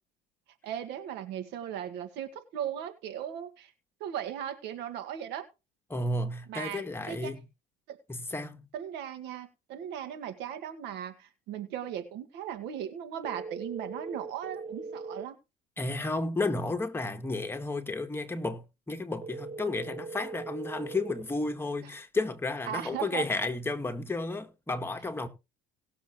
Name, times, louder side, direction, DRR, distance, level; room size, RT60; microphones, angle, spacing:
voice 1, 0.6-3.7 4.0-5.4 6.5-6.8 7.1-7.3 7.9-8.0 8.7-15.3 22.7-23.3, right 10 dB, 75° right, 1.8 m, -37 dB
voice 2, 5.9-7.4 8.1-8.7 15.8-25.3, left 2 dB, 15° left, 1.7 m, -32 dB
sound 1, 13.2-15.2 19.2-21.2, right 4 dB, 35° right, 1.5 m, -40 dB
18.5 x 7.0 x 3.1 m
cardioid pair, 110°, 18 cm